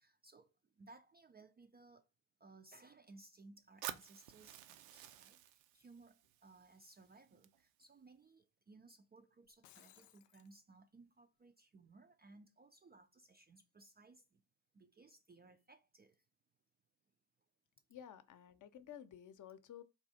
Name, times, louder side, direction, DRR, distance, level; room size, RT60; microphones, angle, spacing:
voice 1, 0.0-2.1 2.4-14.4 14.7-16.2, right 3 dB, 20° right, 0.4 m, -62 dB
Fire, 3.8-7.8, right 12 dB, 75° right, 0.6 m, -51 dB
Shatter, 9.4-10.5, left 13 dB, 80° left, 0.5 m, -64 dB
voice 2, 17.9-19.8, left 9 dB, 40° left, 0.7 m, -53 dB
3.5 x 2.4 x 4.1 m
hypercardioid pair, 60°, 46 cm